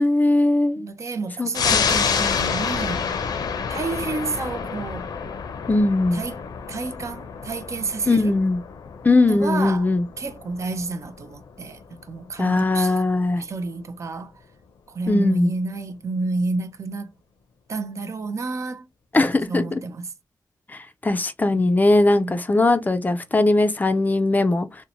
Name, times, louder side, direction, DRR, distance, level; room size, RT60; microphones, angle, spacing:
voice 1, 0.0-0.9 1.4-2.4 5.7-6.2 8.1-8.6 9.0-10.0 12.4-13.4 15.1-15.5 19.1-19.8 20.7-24.8, left 2 dB, 25° left, 0.4 m, -20 dB
voice 2, 0.8-3.2 3.7-5.1 6.1-6.4 6.7-8.3 9.3-9.9 10.2-13.1 13.4-14.3 14.9-17.1 17.7-18.9 19.1-20.1 21.6-21.7 22.2-22.3, right 3 dB, 50° right, 0.4 m, -30 dB
sound 1, 1.5-12.5 12.9-13.0, left 6 dB, 85° left, 0.5 m, -28 dB
2.6 x 2.1 x 2.8 m
wide cardioid pair, 100°, 7 cm